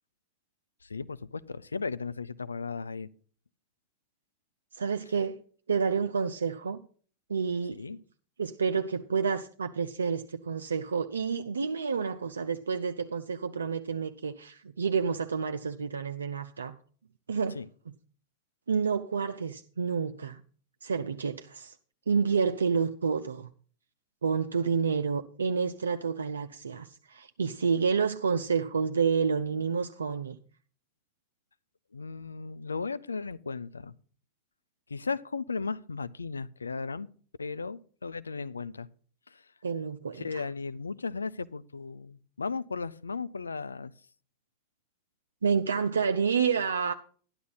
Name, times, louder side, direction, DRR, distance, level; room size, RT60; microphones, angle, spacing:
voice 1, 0.8-3.1 7.8-8.0 17.5-17.7 31.9-33.9 34.9-37.1 37.4-38.9 39.3-39.4 40.1-43.9, left 4 dB, 75° left, 0.5 m, -36 dB
voice 2, 4.7-5.4 5.7-6.8 7.3-7.9 8.4-16.8 17.3-17.6 17.9-18.0 18.7-20.4 20.8-21.8 22.1-23.5 24.2-30.4 39.6-40.4 45.4-46.9, right 5 dB, 70° right, 0.5 m, -29 dB
12.5 x 11.0 x 4.0 m
figure-of-eight pair, 90°, 0 cm